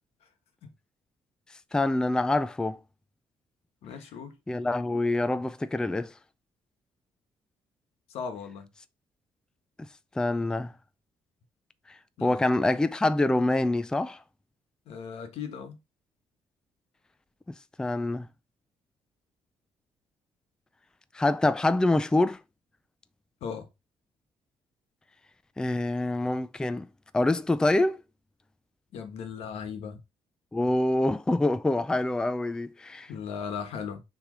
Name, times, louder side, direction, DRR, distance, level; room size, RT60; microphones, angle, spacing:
voice 1, 1.7-2.8 4.5-6.1 10.2-10.7 11.9-14.2 17.8-18.3 21.1-22.4 25.6-26.9 27.1-28.0 30.5-33.1, left 2 dB, 5° left, 0.3 m, -26 dB
voice 2, 3.8-4.3 8.1-8.7 12.2-12.4 14.9-15.8 23.4-23.7 28.9-30.0 33.1-34.0, left 6 dB, 85° left, 1.4 m, -37 dB
6.3 x 3.3 x 5.1 m
cardioid pair, 130°, 10 cm